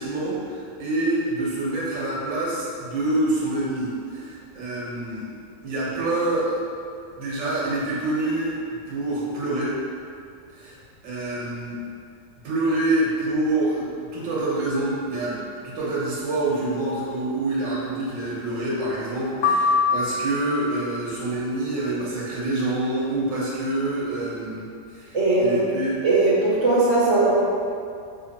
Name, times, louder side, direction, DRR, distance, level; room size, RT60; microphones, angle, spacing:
voice 1, 0.0-5.3 5.6-6.6 7.1-8.6 8.9-9.8 10.5-10.8 11.0-11.8 12.4-24.6 24.9-26.0, right 2 dB, 70° right, -6 dB, 2.2 m, -26 dB
sound 1, 19.4-20.7, left 4 dB, 80° left, 1.4 m, -22 dB
voice 2, 25.1-25.6 26.0-27.3, right 2 dB, 45° right, -7 dB, 1.5 m, -19 dB
6.2 x 3.9 x 4.2 m, 2.4 s
omnidirectional pair, 2.0 m